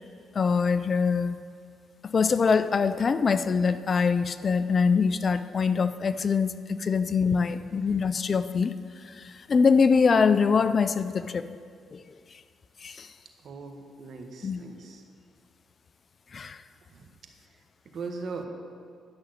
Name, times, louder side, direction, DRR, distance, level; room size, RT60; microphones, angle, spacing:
voice 1, 0.3-1.4 2.0-8.7 9.0-11.5 11.9-12.0 12.8-13.1 14.4-14.6 16.3-16.6, left 5 dB, 40° left, 13 dB, 0.4 m, -24 dB
voice 2, 7.6-7.9 13.4-15.0 16.9-17.1 17.9-18.5, right 4 dB, 60° right, 3 dB, 1.5 m, -40 dB
11.5 x 6.1 x 7.9 m, 2.2 s
cardioid pair, 90°, 0 cm